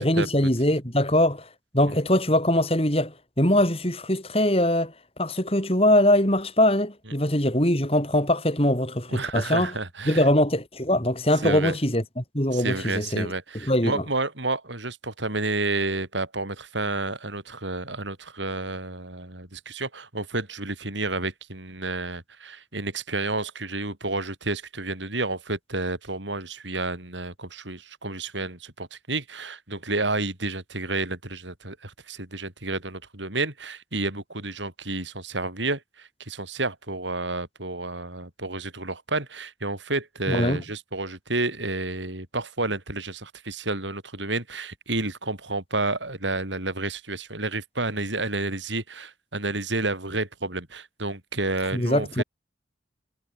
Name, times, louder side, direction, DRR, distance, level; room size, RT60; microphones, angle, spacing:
voice 1, 0.0-1.5 1.7-9.7 10.1-13.3 13.7-14.0 40.3-40.6 51.7-52.2, left 1 dB, 30° left, 6.0 m, -22 dB
voice 2, 9.1-10.3 11.4-11.8 12.5-52.2, right 2 dB, 85° right, 7.5 m, -30 dB
head